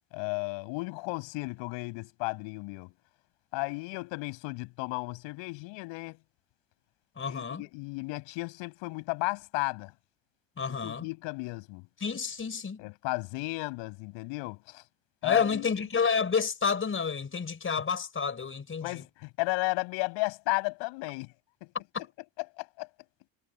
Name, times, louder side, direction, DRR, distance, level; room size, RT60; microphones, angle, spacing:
voice 1, 0.1-2.9 3.5-6.2 7.3-9.9 10.8-11.9 12.8-14.8 15.2-15.7 18.8-21.3 21.6-21.7 22.6-22.9, left 26 dB, 85° left, 7.6 m, -34 dB
voice 2, 7.2-7.6 10.6-11.1 12.0-12.8 15.2-19.0 21.9-22.1, left 5 dB, 30° left, 4.7 m, -30 dB
cardioid pair, 105°, 44 cm